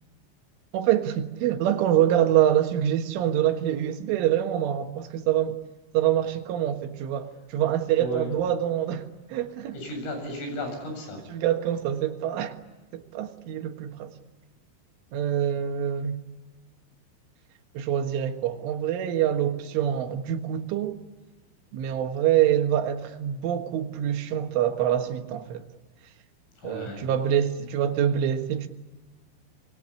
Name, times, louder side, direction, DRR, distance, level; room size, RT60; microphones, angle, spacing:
voice 1, 0.7-5.6 5.9-9.8 11.3-12.6 12.9-14.1 15.1-16.2 17.8-21.0 21.7-25.7 26.6-28.7, right 10 dB, 75° right, 6 dB, 3.9 m, -25 dB
voice 2, 8.0-8.3 9.7-11.2 26.6-27.1, left 1 dB, 80° left, 5 dB, 10.5 m, -34 dB
26.0 x 22.5 x 9.8 m, 1.2 s
omnidirectional pair, 5.8 m